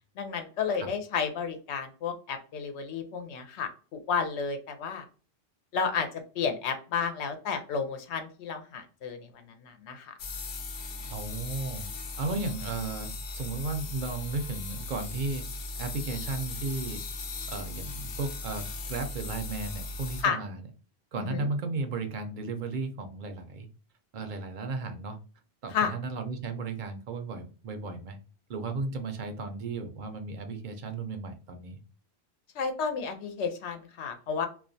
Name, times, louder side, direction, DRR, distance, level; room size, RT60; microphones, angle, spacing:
voice 1, 0.2-5.0 5.7-10.1 20.2-20.4 21.2-21.5 25.7-25.9 32.5-34.5, left 6 dB, 85° left, 6 dB, 0.9 m, -32 dB
sound 1, 10.2-20.2, left 3 dB, 60° left, 0.6 m, -38 dB
voice 2, 11.1-11.9 12.2-15.4 15.8-17.0 17.5-20.6 21.1-23.7 24.1-25.2 25.6-28.2 28.5-31.8, right 3 dB, 55° right, 6 dB, 0.6 m, -34 dB
2.3 x 2.2 x 2.5 m, 0.38 s
omnidirectional pair, 1.1 m